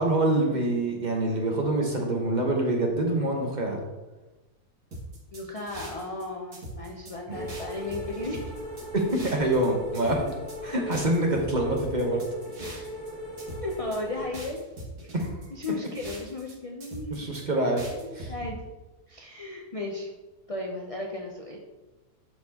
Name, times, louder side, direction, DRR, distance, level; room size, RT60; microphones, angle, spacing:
voice 1, 0.0-3.8 7.3-7.4 8.9-10.2 10.6-12.2 12.6-12.8 15.1-15.3 17.1-17.8 18.2-18.3, right 1 dB, 30° right, 0 dB, 1.1 m, -26 dB
sound 1, 4.9-6.2 6.5-7.1 7.5-9.7 9.9-10.6 10.9-13.1 13.4-14.0 14.3-16.5 16.8-17.4 17.8-18.5, right 1 dB, 75° right, 2.4 m, -41 dB
voice 2, 5.3-8.5 13.6-14.6 15.0-15.1 15.5-17.3 18.0-18.6 19.1-20.1 20.5-21.6, left 2 dB, 55° left, 0 dB, 0.3 m, -35 dB
sound 2, 7.3-14.3, left 1 dB, 15° left, 2.1 m, -39 dB
12.0 x 4.3 x 2.9 m, 1.1 s
omnidirectional pair, 1.7 m